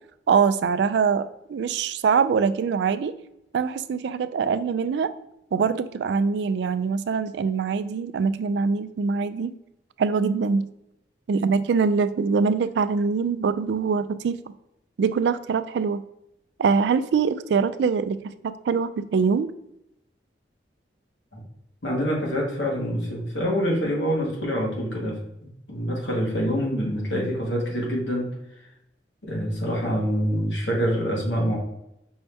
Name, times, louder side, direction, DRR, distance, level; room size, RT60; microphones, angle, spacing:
voice 1, 0.3-3.1 3.5-5.1 5.5-9.5 10.0-10.6 11.3-14.4 15.0-16.0 16.6-19.5, right 5 dB, 65° right, 12 dB, 0.3 m, -23 dB
voice 2, 21.8-28.3 29.2-31.6, equal, 75° left, -2 dB, 1.6 m, -26 dB
5.4 x 2.7 x 3.3 m, 0.83 s
head